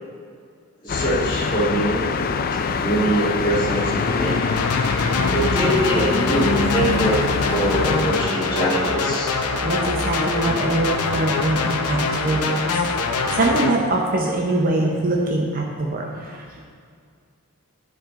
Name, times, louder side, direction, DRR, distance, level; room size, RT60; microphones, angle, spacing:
voice 1, 0.8-2.2 2.5-4.4 5.3-7.2 7.5-9.3, right 1 dB, 20° left, -8 dB, 1.7 m, -23 dB
sound 1, 0.9-8.2, left 4 dB, 40° left, 0.3 m, -24 dB
sound 2, 2.5-13.5, equal, 75° right, 1.5 m, -40 dB
sound 3, 4.6-13.7, left 4 dB, 90° left, 0.7 m, -24 dB
voice 2, 9.6-12.8 13.3-16.4, right 2 dB, 40° right, -1 dB, 0.8 m, -23 dB
13.0 x 5.0 x 3.8 m, 2.2 s
head